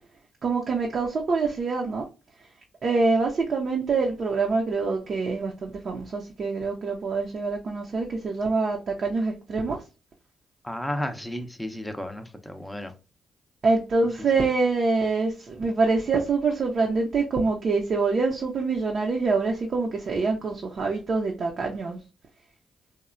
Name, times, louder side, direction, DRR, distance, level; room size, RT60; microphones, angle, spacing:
voice 1, 0.4-2.1 2.8-9.8 13.6-22.0, right 4 dB, 55° right, 0.5 m, -25 dB
voice 2, 10.6-12.9, left 1 dB, 5° left, 0.5 m, -33 dB
3.0 x 2.1 x 2.4 m
hypercardioid pair, 45°, 0 cm